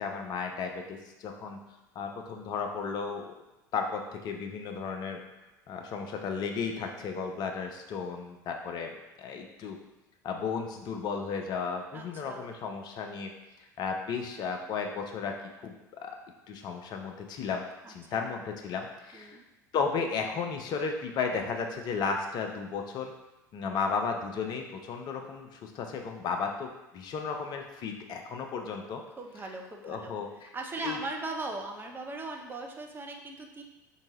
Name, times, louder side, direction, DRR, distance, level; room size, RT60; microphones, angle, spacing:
voice 1, 0.0-1.6 2.0-3.3 3.7-5.2 5.7-8.9 9.2-9.8 10.2-13.3 13.6-15.3 15.6-15.7 16.0-16.1 16.5-17.6 17.9-19.4 19.7-23.1 23.5-29.0 29.8-30.5 30.8-31.0, left 5 dB, 45° left, 3 dB, 0.6 m, -34 dB
voice 2, 11.9-12.5 17.8-18.2 19.1-19.4 29.2-30.1 30.5-33.6, right 3 dB, 20° right, 2 dB, 0.6 m, -39 dB
4.5 x 2.8 x 2.9 m, 0.99 s
figure-of-eight pair, 65°, 10 cm